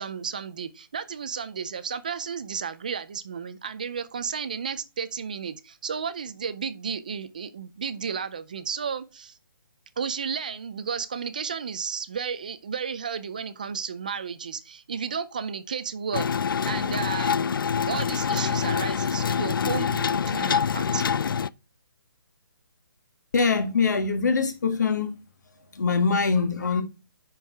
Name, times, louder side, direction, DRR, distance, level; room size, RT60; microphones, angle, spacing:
voice 1, 0.0-9.4 10.0-17.5 17.9-21.0, right 6 dB, 20° right, 0.4 m, -33 dB
sound 1, 16.1-21.5, left 7 dB, 70° left, 0.4 m, -25 dB
voice 2, 23.3-25.1 25.5-26.8, left 5 dB, 50° left, 1.5 m, -23 dB
10.0 x 4.6 x 3.3 m
hypercardioid pair, 170°, 12 cm